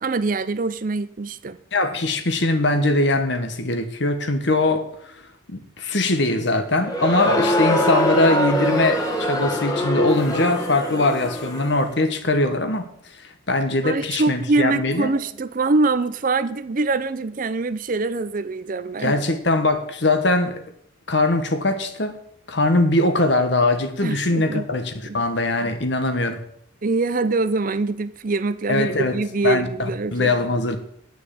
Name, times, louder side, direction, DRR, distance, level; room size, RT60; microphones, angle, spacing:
voice 1, 0.0-1.6 13.8-19.2 24.0-24.7 25.0-25.2 26.8-30.3, right 3 dB, 40° right, 0.5 m, -24 dB
voice 2, 1.7-4.8 5.5-12.9 13.5-15.1 19.0-20.6 21.1-22.2 22.5-26.4 28.7-29.2 29.4-30.8, left 2 dB, 60° left, 1.3 m, -21 dB
Crowd, 6.8-11.8, equal, 20° left, 1.7 m, -23 dB
9.8 x 6.1 x 8.6 m
head